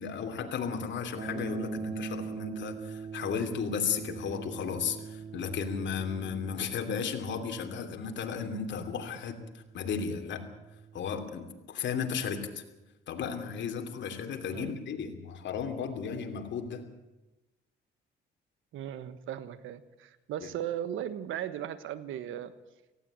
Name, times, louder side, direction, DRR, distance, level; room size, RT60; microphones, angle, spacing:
voice 1, 0.0-9.3 9.7-10.5 10.9-12.6 13.1-16.8 20.4-20.5, left 6 dB, 65° left, 5 dB, 2.9 m, -34 dB
sound 1, 1.1-11.2, right 5 dB, 30° right, 0.7 m, -42 dB
voice 2, 18.7-22.5, right 10 dB, 85° right, 13 dB, 1.3 m, -37 dB
18.5 x 16.0 x 8.9 m, 1.0 s
cardioid pair, 90°, 20 cm